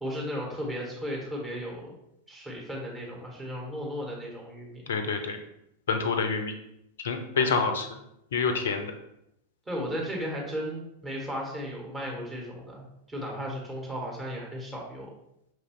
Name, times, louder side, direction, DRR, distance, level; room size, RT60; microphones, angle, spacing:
voice 1, 0.0-1.9 2.3-5.0 7.3-7.6 9.7-15.1, equal, 10° right, -3 dB, 1.3 m, -35 dB
voice 2, 4.9-5.4 5.9-6.5 7.0-7.9 8.3-8.9, left 5 dB, 60° left, 7 dB, 0.5 m, -27 dB
6.0 x 2.6 x 3.1 m, 0.82 s
figure-of-eight pair, 90°, 0 cm